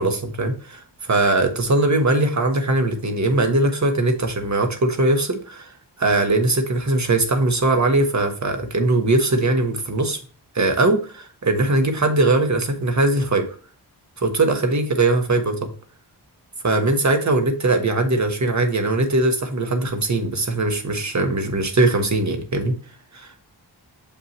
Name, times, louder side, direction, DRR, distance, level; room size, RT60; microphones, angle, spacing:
voice 1, 0.0-5.7 6.0-10.2 10.5-13.5 14.2-15.7 16.6-22.7 23.1-23.3, right 2 dB, 45° right, 5 dB, 1.2 m, -20 dB
6.6 x 5.7 x 3.1 m, 0.40 s
wide cardioid pair, 105°, 41 cm